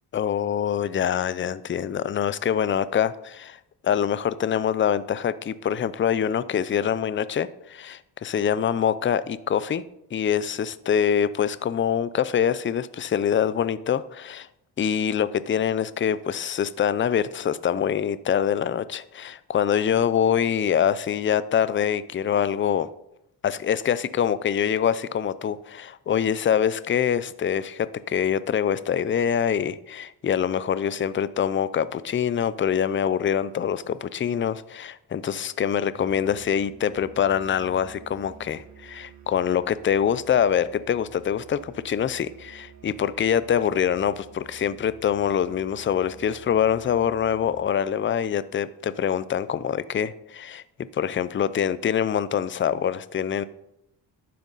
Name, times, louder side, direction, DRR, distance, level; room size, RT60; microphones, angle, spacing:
voice 1, 0.1-9.8 10.1-14.5 14.8-22.9 23.4-50.6 50.9-53.4, left 8 dB, 30° left, 0.5 m, -25 dB
Musical instrument, 35.9-47.8, right 6 dB, 40° right, 1.6 m, -50 dB
12.0 x 9.3 x 4.0 m
cardioid pair, 115°, 43 cm